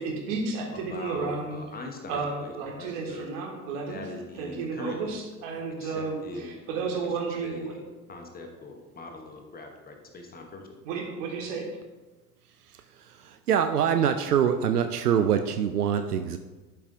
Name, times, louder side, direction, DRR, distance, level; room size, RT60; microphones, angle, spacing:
voice 1, 0.0-1.6 2.1-4.0 4.4-7.7 10.8-11.7, right 4 dB, 55° right, 0 dB, 1.8 m, -32 dB
voice 2, 0.7-3.3 3.9-5.2 5.8-6.6 7.0-7.1 7.4-7.8 8.1-10.7, left 2 dB, 20° left, 3 dB, 1.0 m, -41 dB
voice 3, 13.2-16.4, right 8 dB, 75° right, 8 dB, 0.6 m, -24 dB
12.0 x 5.5 x 2.5 m, 1.2 s
figure-of-eight pair, 80°, 46 cm